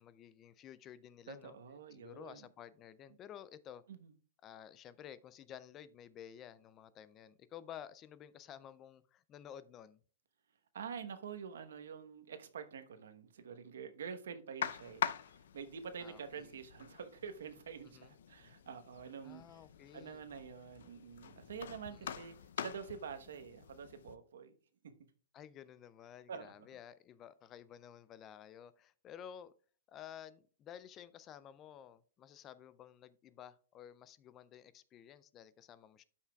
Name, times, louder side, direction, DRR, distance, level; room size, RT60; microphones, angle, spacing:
voice 1, 0.0-1.6 1.9-3.8 4.4-10.0 16.0-16.6 17.8-18.1 19.2-20.2 21.9-22.2 25.3-29.5 29.9-36.0, left 9 dB, 20° left, 0.3 m, -53 dB
voice 2, 1.3-2.4 3.9-4.1 10.7-19.6 19.9-24.5 26.3-26.5, right 6 dB, 90° right, 1.0 m, -47 dB
sound 1, 14.6-24.2, left 9 dB, 75° left, 0.5 m, -45 dB
12.5 x 5.7 x 2.3 m
hypercardioid pair, 165°, 0 cm